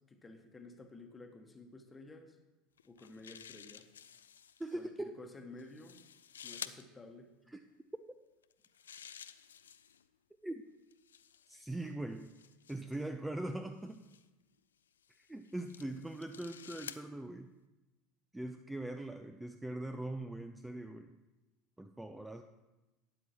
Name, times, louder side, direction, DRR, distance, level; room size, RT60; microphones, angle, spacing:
voice 1, 0.0-2.4 2.8-3.9 4.7-6.0 6.4-7.3, left 2 dB, 20° left, 5 dB, 1.2 m, -52 dB
sound 1, 2.8-4.8 5.6-6.8 8.4-10.1 10.9-13.0 13.9-14.2 15.0-17.0, left 8 dB, 80° left, 0.3 m, -51 dB
voice 2, 4.6-5.1 7.5-7.6 10.4-10.6 11.5-12.3 12.7-14.0 15.2-17.5 18.3-21.1 21.8-22.4, right 1 dB, 5° right, 7 dB, 0.4 m, -41 dB
12.5 x 9.2 x 2.9 m, 1.1 s
figure-of-eight pair, 75°, 0 cm